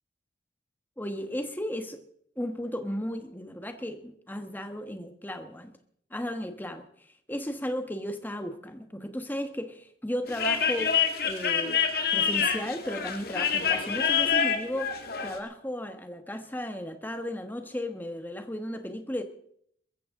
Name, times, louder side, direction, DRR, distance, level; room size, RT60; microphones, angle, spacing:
voice 1, 1.0-2.0 2.4-5.7 6.1-11.0 11.2-11.8 12.1-14.9 15.2-19.2, equal, 10° left, 7 dB, 1.3 m, -35 dB
sound 1, 10.3-15.4, left 7 dB, 55° left, 1.9 m, -27 dB
21.0 x 14.5 x 3.7 m, 0.67 s
head